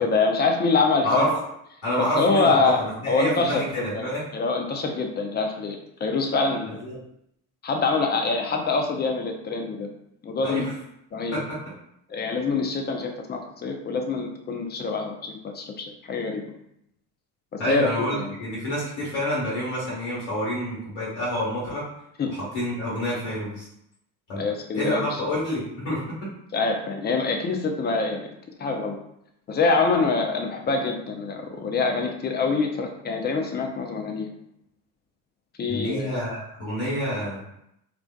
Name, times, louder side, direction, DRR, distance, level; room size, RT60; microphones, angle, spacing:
voice 1, 0.0-1.3 2.0-2.8 3.1-6.8 7.6-9.9 10.2-10.7 11.1-11.4 12.1-16.4 17.5-18.3 22.2-22.3 24.4-25.2 26.5-28.3 28.6-29.0 29.5-34.3 35.6-36.2, left 4 dB, 25° left, 3 dB, 0.4 m, -25 dB
voice 2, 1.8-4.2 6.7-7.0 10.4-10.7 11.3-11.7 17.6-21.8 22.3-23.7 24.3-24.4 24.7-26.0 35.7-37.4, equal, 65° left, -7 dB, 1.2 m, -28 dB
2.4 x 2.2 x 2.2 m, 0.77 s
hypercardioid pair, 55°, 46 cm